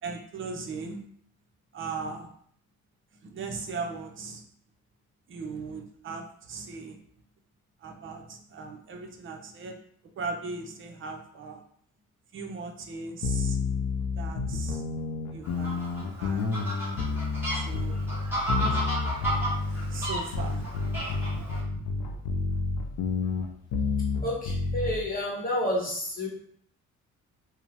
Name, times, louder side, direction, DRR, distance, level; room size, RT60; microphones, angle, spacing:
voice 1, 0.0-1.1 1.7-2.3 3.1-4.5 5.3-7.2 7.8-9.8 10.0-11.6 12.3-13.7 14.0-14.8 15.3-15.9 16.2-16.4 17.5-18.0 18.3-18.8 19.9-20.6 21.1-21.3 22.8-22.9 24.0-24.1, right 4 dB, 40° right, 4 dB, 0.5 m, -39 dB
sound 1, 13.2-25.0, left 4 dB, 80° left, 0.5 m, -30 dB
Fowl, 15.4-21.6, right 1 dB, 5° right, 1.2 m, -33 dB
voice 2, 24.2-26.3, left 1 dB, 30° left, -5 dB, 1.0 m, -30 dB
2.7 x 2.0 x 2.9 m, 0.62 s
cardioid pair, 90°, 30 cm